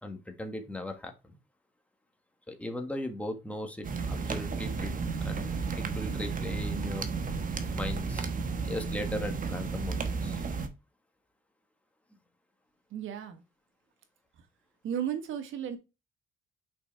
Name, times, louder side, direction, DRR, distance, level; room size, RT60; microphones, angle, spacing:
voice 1, 0.0-1.4 2.5-7.1 7.7-8.3 8.6-10.5, left 1 dB, 5° left, 4 dB, 1.6 m, -38 dB
sound 1, 3.8-10.7, right 5 dB, 45° right, 1.2 m, -33 dB
voice 2, 12.9-13.4 14.8-15.8, right 9 dB, 80° right, 9 dB, 1.3 m, -34 dB
5.8 x 4.7 x 3.4 m, 0.27 s
cardioid pair, 90°, 20 cm